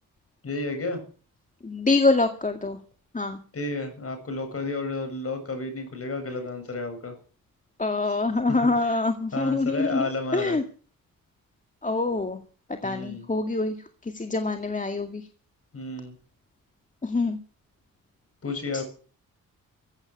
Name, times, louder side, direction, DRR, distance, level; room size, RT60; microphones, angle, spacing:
voice 1, 0.4-1.0 3.5-7.1 8.0-8.1 8.8-8.9 9.3-10.6 12.8-13.3 15.7-16.1 18.4-18.8, left 3 dB, 40° left, 7 dB, 7.7 m, -32 dB
voice 2, 1.6-2.8 3.1-3.4 7.8-10.1 10.3-10.6 11.8-12.4 12.7-13.8 14.0-15.3 17.0-17.4 18.7-18.8, left 3 dB, 20° left, 6 dB, 2.1 m, -25 dB
15.5 x 9.6 x 8.7 m, 0.41 s
cardioid pair, 80°, 34 cm